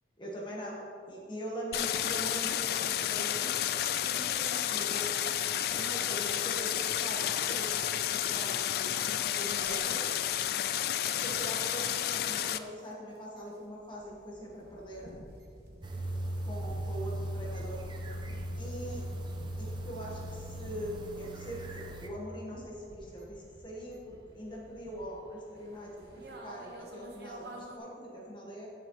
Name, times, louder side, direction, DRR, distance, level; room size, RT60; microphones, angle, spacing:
voice 1, 0.2-0.8 1.1-5.2 5.7-6.7 7.0-8.6 9.4-10.2 10.9-15.1 16.4-17.8 18.6-19.0 19.6-28.7, right 1 dB, 25° left, -3 dB, 1.1 m, -42 dB
Stream, 1.7-12.6, left 11 dB, 55° left, 0.3 m, -31 dB
sound 1, 9.5-27.8, right 1 dB, 60° right, 1.1 m, -51 dB
sound 2, 15.8-22.1, right 1 dB, 25° right, 0.7 m, -38 dB
10.0 x 8.0 x 3.0 m, 2.5 s
head